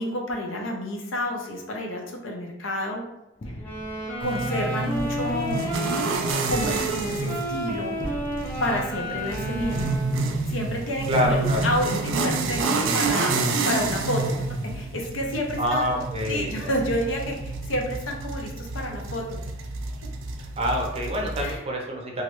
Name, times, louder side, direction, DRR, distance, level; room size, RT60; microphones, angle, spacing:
voice 1, 0.0-3.0 4.2-5.8 6.5-8.0 8.6-9.9 10.5-13.4 13.6-14.5 14.7-15.9 16.3-19.4 21.4-21.6, equal, 80° left, 1 dB, 0.6 m, -29 dB
sound 1, 3.4-12.7, equal, 35° left, 0.4 m, -41 dB
sound 2, 3.5-10.4, right 1 dB, 10° left, 0.9 m, -32 dB
sound 3, 4.2-21.5, right 3 dB, 80° right, 0.4 m, -29 dB
voice 2, 11.1-11.7 15.6-16.7 20.6-22.2, equal, 30° right, 0 dB, 0.6 m, -27 dB
3.0 x 2.4 x 3.0 m, 0.91 s
head